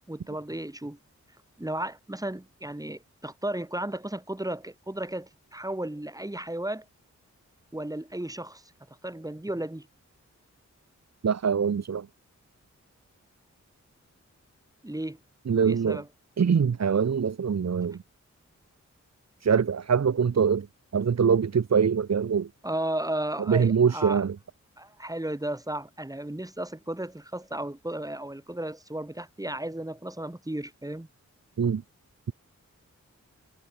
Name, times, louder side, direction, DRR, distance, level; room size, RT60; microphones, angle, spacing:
voice 1, 0.1-1.0 1.6-6.9 7.7-8.6 9.0-9.9 14.8-15.2 15.7-16.1 22.6-24.3 24.8-31.1, right 1 dB, 10° right, 5.3 m, -34 dB
voice 2, 11.2-12.0 15.5-16.0 16.4-18.0 19.4-20.7 20.9-22.5 23.5-24.3 31.6-31.8, right 6 dB, 60° right, 1.4 m, -23 dB
wide cardioid pair, 115°, 30 cm